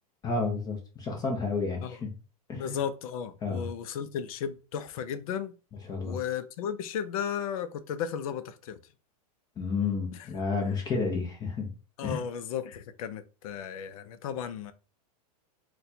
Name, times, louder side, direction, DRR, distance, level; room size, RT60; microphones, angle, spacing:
voice 1, 0.2-2.1 2.5-2.8 3.4-3.7 5.9-6.2 9.6-11.7 12.0-12.2, left 4 dB, 20° left, 0.7 m, -31 dB
voice 2, 2.5-5.5 6.0-8.8 10.1-10.3 12.0-14.7, left 8 dB, 60° left, 0.5 m, -34 dB
4.1 x 2.2 x 2.7 m
supercardioid pair, 145°, 20 cm